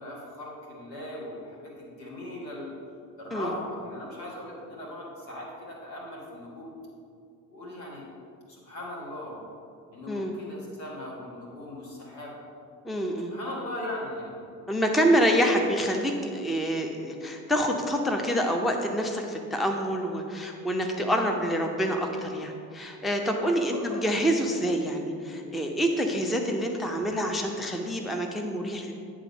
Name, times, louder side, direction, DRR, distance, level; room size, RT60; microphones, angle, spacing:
voice 1, 0.0-2.7 3.2-6.7 7.5-8.0 8.5-9.4 9.9-12.3 13.3-14.4 14.9-15.0 23.9-24.0, left 1 dB, 80° left, -4 dB, 1.6 m, -39 dB
voice 2, 12.8-13.3 14.7-28.9, equal, ahead, 3 dB, 0.5 m, -27 dB
9.0 x 3.7 x 5.0 m, 2.4 s
figure-of-eight pair, 55°, 48 cm